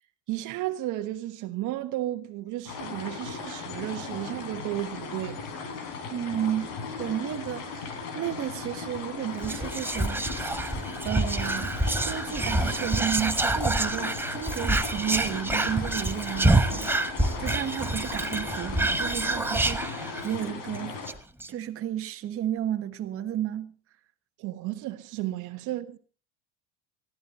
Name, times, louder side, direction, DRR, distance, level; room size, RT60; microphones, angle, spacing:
voice 1, 0.3-5.5 24.4-26.0, right 15 dB, 60° right, 1.3 m, -33 dB
sound 1, 2.7-21.1, left 5 dB, 75° left, 4.4 m, -37 dB
voice 2, 6.1-10.6 11.0-17.0 17.4-21.2 21.5-23.7, right 11 dB, 40° right, 1.3 m, -33 dB
Whispering, 9.4-20.4 20.8-20.9 21.1-21.5, right 2 dB, 5° right, 1.0 m, -27 dB
20.0 x 14.5 x 4.2 m
supercardioid pair, 110°, 35 cm